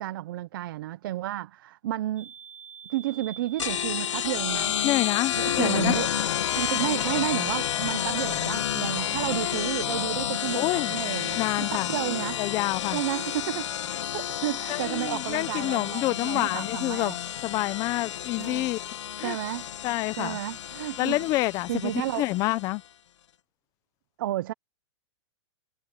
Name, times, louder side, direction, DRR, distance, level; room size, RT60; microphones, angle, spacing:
voice 1, 0.0-2.3 2.9-4.8 5.3-6.3 6.5-12.4 12.9-13.7 14.1-17.1 18.4-18.7 19.2-19.7 20.2-21.2 21.7-22.3 24.2-24.5, right 15 dB, 50° right, 0.7 m, -31 dB
sound 1, 2.2-13.4, right 7 dB, 10° right, 5.0 m, -49 dB
sound 2, 3.6-22.7, left 10 dB, 90° left, 1.4 m, -30 dB
voice 2, 4.8-6.0 10.5-10.9 11.4-11.9 12.4-13.0 14.7-17.1 17.4-18.8 19.2-19.4 19.8-20.4 21.0-22.8, left 18 dB, 25° left, 0.8 m, -28 dB
supercardioid pair, 170°, 15 cm